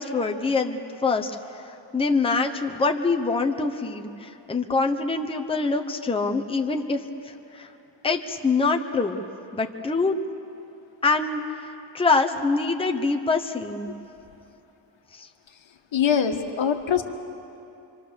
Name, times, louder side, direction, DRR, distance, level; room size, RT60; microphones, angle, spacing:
voice 1, 0.0-7.7 8.0-9.2 9.5-10.1 11.0-13.9 15.1-15.3, left 4 dB, 10° left, 4 dB, 0.9 m, -25 dB
voice 2, 15.9-17.0, left 7 dB, 70° left, 6 dB, 1.6 m, -23 dB
27.0 x 25.5 x 6.8 m, 2.8 s
wide cardioid pair, 135°, 48 cm